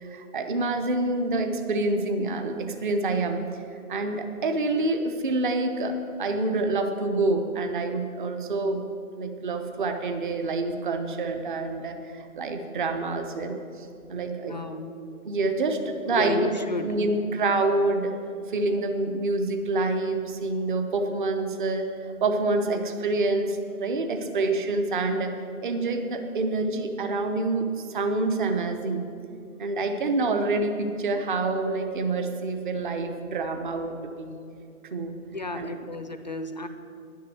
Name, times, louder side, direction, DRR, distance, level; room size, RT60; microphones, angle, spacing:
voice 1, 0.0-3.5 3.7-8.8 9.2-14.5 15.2-16.5 16.8-18.1 18.5-21.9 22.2-25.4 25.6-29.0 29.6-34.4 34.9-35.1 35.5-35.7, right 2 dB, 35° right, 6 dB, 0.8 m, -27 dB
voice 2, 14.4-15.0 16.1-16.9 35.3-36.7, left 2 dB, 30° left, 8 dB, 0.4 m, -32 dB
10.5 x 6.6 x 9.2 m, 2.6 s
hypercardioid pair, 160°, 44 cm